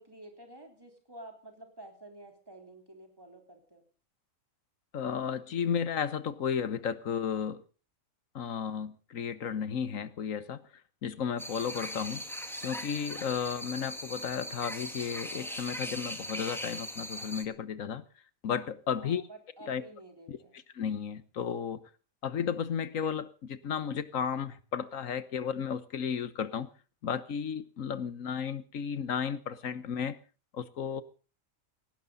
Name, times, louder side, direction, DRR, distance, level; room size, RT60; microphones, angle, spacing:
voice 1, 0.0-3.8 19.0-20.6, right 1 dB, 15° right, 3.9 m, -50 dB
voice 2, 4.9-7.6 8.3-10.6 11.0-12.2 12.6-18.0 18.4-19.2 19.7-19.8 20.3-20.4 20.7-21.8 22.2-26.7 27.0-30.2 30.5-31.0, left 7 dB, 75° left, 1.5 m, -33 dB
sound 1, 11.4-17.4, equal, ahead, 1.7 m, -39 dB
18.5 x 16.5 x 4.0 m
omnidirectional pair, 1.4 m